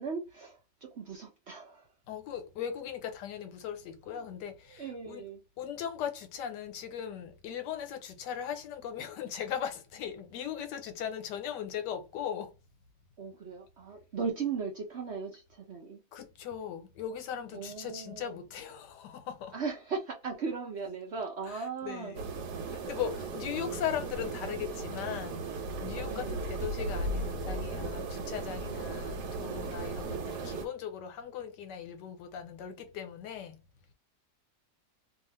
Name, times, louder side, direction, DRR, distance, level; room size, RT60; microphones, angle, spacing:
voice 1, 0.0-1.9 4.1-4.3 4.7-5.4 13.2-16.0 17.5-18.4 19.5-22.2 22.9-23.1 26.1-26.7, right 5 dB, 60° right, 0.7 m, -38 dB
voice 2, 2.1-5.2 5.6-12.6 16.1-19.5 21.5-22.2 22.6-25.5 25.8-33.6, left 9 dB, 85° left, 1.3 m, -38 dB
sound 1, 22.1-30.7, right 3 dB, 80° right, 1.3 m, -36 dB
2.7 x 2.4 x 3.1 m
omnidirectional pair, 1.8 m